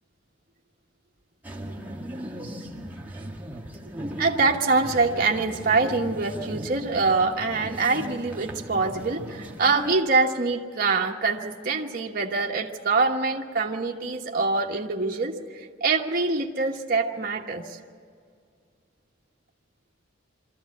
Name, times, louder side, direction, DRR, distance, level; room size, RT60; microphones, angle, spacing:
sound 1, 1.4-9.9, right 1 dB, 10° right, 1.7 m, -37 dB
voice 1, 4.2-17.8, right 3 dB, 45° right, 0 dB, 1.3 m, -24 dB
23.0 x 14.5 x 8.5 m, 2.2 s
head